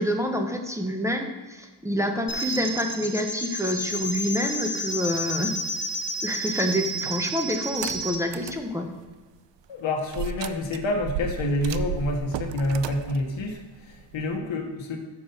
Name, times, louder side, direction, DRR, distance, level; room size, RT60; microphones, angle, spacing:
voice 1, 0.0-5.5 6.2-8.9, equal, 5° right, 3 dB, 0.9 m, -27 dB
sound 1, 2.3-8.2, equal, 25° left, 0.9 m, -31 dB
sound 2, 7.6-8.6 9.1-9.2 10.1-14.4, right 8 dB, 75° right, 0.5 m, -34 dB
voice 2, 9.7-15.0, left 2 dB, 85° left, 2 dB, 1.1 m, -28 dB
7.0 x 4.8 x 5.4 m, 1.4 s
wide cardioid pair, 85°, 45 cm